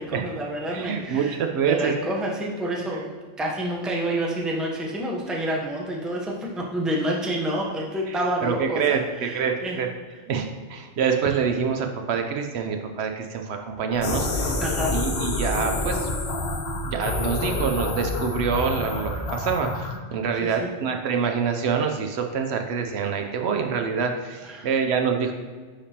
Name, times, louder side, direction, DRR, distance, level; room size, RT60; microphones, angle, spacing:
voice 1, 0.0-1.4 1.6-9.8 14.6-15.0 20.4-20.7 24.4-24.7, right 1 dB, ahead, -2 dB, 0.6 m, -28 dB
voice 2, 0.7-1.9 8.1-9.9 10.3-14.6 14.9-16.1 16.8-25.3, right 6 dB, 70° right, 4 dB, 0.8 m, -26 dB
sound 1, 13.9-20.0, left 2 dB, 65° left, 0.9 m, -27 dB
9.7 x 3.5 x 2.8 m, 1.5 s
omnidirectional pair, 1.2 m